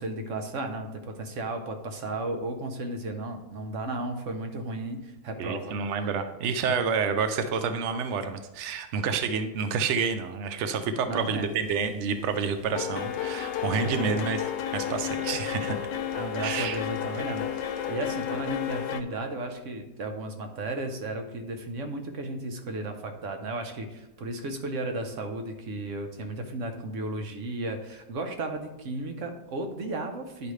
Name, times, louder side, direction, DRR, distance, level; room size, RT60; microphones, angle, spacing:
voice 1, 0.0-6.1 11.0-11.5 13.8-14.3 16.1-30.5, right 2 dB, 55° right, 5 dB, 1.0 m, -34 dB
voice 2, 5.4-14.4 14.7-15.8 16.4-16.8, right 5 dB, 80° right, 8 dB, 0.6 m, -29 dB
sound 1, 11.4-11.8 12.1-19.0, left 9 dB, 75° left, 1.2 m, -32 dB
10.5 x 5.1 x 3.2 m, 0.98 s
omnidirectional pair, 1.9 m